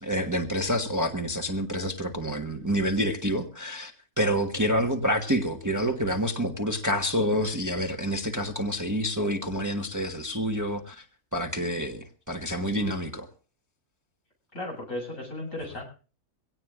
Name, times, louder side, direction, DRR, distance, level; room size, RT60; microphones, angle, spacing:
voice 1, 0.0-11.0 11.3-13.3, equal, 15° right, 1.2 m, -28 dB
voice 2, 14.5-15.8, left 1 dB, 70° left, 8.3 m, -35 dB
23.5 x 17.5 x 2.5 m
omnidirectional pair, 1.4 m